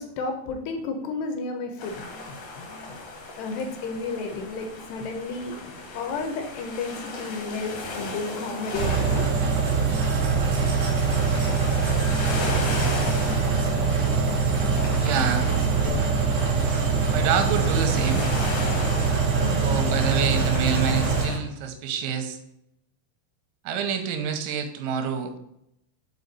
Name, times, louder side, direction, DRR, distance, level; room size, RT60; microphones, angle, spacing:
voice 1, 0.0-2.9 3.4-5.6 5.9-9.3 19.4-19.8, left 3 dB, 80° left, 5 dB, 2.7 m, -32 dB
sound 1, 1.8-21.4, left 2 dB, 60° left, 2.2 m, -37 dB
sound 2, 8.7-21.3, right 5 dB, 60° right, 3.1 m, -23 dB
voice 2, 15.0-15.5 17.1-18.3 19.6-22.4 23.6-25.4, right 7 dB, 85° right, 6 dB, 3.2 m, -27 dB
6.7 x 4.9 x 4.0 m, 0.78 s
omnidirectional pair, 5.2 m